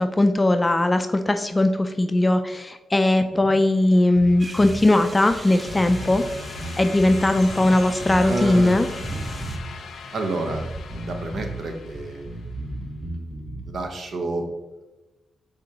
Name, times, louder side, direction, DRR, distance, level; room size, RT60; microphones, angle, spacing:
voice 1, 0.0-6.2 6.8-8.9, left 1 dB, 20° left, 7 dB, 0.3 m, -19 dB
sound 1, 3.8-12.7, left 5 dB, 75° left, 0.5 m, -41 dB
Bass guitar, 4.2-4.8 5.3-5.4 5.7-7.3 8.1-9.7 10.5-11.6 11.9-13.7, right 1 dB, 5° right, 1.2 m, -35 dB
sound 2, 4.4-9.6, right 2 dB, 30° right, 0.6 m, -38 dB
voice 2, 8.3-8.8 10.1-12.3 13.6-14.5, right 2 dB, 65° right, 4 dB, 0.8 m, -29 dB
5.0 x 3.5 x 2.8 m, 1.1 s
cardioid pair, 65°, 0 cm